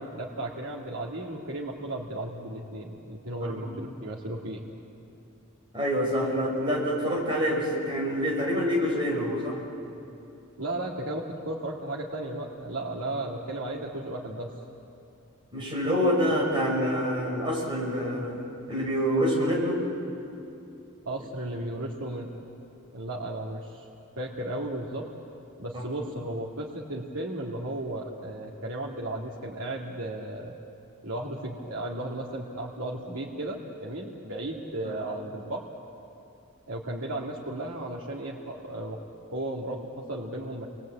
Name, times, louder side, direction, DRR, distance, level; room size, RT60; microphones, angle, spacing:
voice 1, 0.1-4.7 10.6-14.5 21.1-22.3 22.9-23.9 24.2-25.0 25.6-30.6 31.0-35.6 36.7-39.0 39.3-40.7, right 1 dB, 80° right, -4 dB, 2.3 m, -34 dB
voice 2, 5.7-9.6 15.5-19.8 25.7-25.8 34.8-34.9, equal, 25° right, -3 dB, 6.5 m, -27 dB
30.0 x 22.0 x 8.7 m, 2.7 s
head